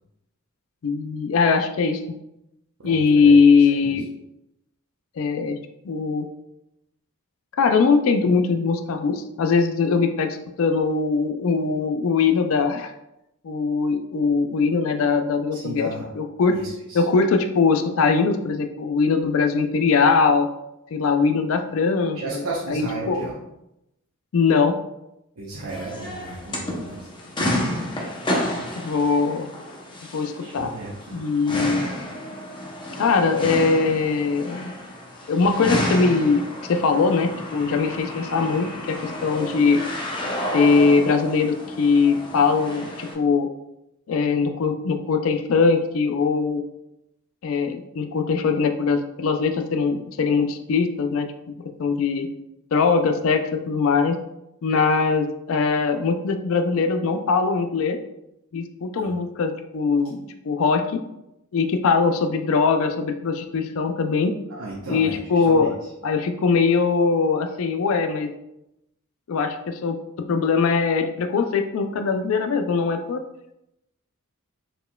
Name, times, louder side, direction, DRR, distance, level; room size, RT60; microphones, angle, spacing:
voice 1, 0.8-2.0 2.8-4.1 5.2-5.6 5.8-6.3 7.6-12.9 13.4-15.9 16.2-16.6 16.9-20.5 20.9-22.4 22.7-23.3 24.3-24.7 28.7-29.5 30.1-30.7 31.1-31.9 33.0-34.7 35.3-39.8 40.5-43.5 44.1-46.6 47.4-51.3 51.8-52.3 52.7-54.1 54.6-58.0 58.5-61.0 61.5-64.4 64.9-65.7 66.0-68.3 69.3-70.0 70.3-73.2, left 4 dB, 65° left, 6 dB, 0.3 m, -21 dB
voice 2, 2.8-3.3 3.8-3.9 15.5-16.1 16.5-17.0 22.1-23.4 25.4-27.1 30.4-31.2 59.0-59.1 64.5-65.7, right 2 dB, 80° right, -6 dB, 0.8 m, -34 dB
sound 1, 25.7-43.1, left 1 dB, 20° left, 0.6 m, -31 dB
4.4 x 4.3 x 2.2 m, 0.87 s
head